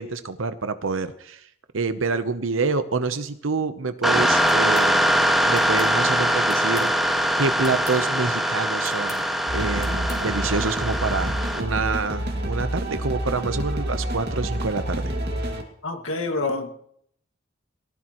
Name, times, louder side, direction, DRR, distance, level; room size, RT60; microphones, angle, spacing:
voice 1, 0.0-1.4 1.7-5.1 5.5-6.9 7.4-9.2 9.5-15.1, right 4 dB, 90° right, 10 dB, 0.9 m, -27 dB
sound 1, 4.0-11.6, equal, ahead, 1.6 m, -22 dB
sound 2, 4.5-4.9 5.5-5.9 6.5-7.0 7.6-8.0 8.8-9.2 9.8-10.2, left 2 dB, 15° left, 3.4 m, -42 dB
sound 3, 9.5-15.6, right 1 dB, 55° right, 2.2 m, -28 dB
voice 2, 15.8-16.7, left 3 dB, 90° left, 4 dB, 2.0 m, -27 dB
18.5 x 18.5 x 3.1 m, 0.68 s
head